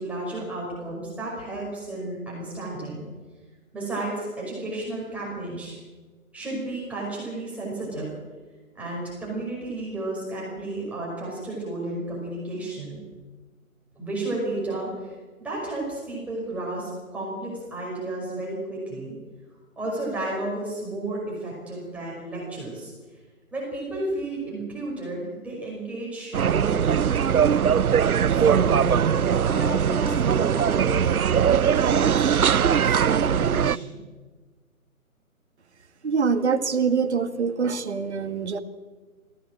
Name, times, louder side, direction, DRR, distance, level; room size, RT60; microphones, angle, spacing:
voice 1, 0.0-3.0 3.7-5.8 6.3-8.1 8.7-13.0 14.0-15.1 15.4-19.2 19.8-22.9 23.5-27.5 28.3-34.0, right 2 dB, 5° right, -5 dB, 5.4 m, -32 dB
sound 1, 26.3-33.8, right 8 dB, 80° right, 0.6 m, -21 dB
voice 2, 36.0-38.6, right 5 dB, 50° right, 10 dB, 1.6 m, -24 dB
22.0 x 16.0 x 7.5 m, 1.4 s
figure-of-eight pair, 145°, 43 cm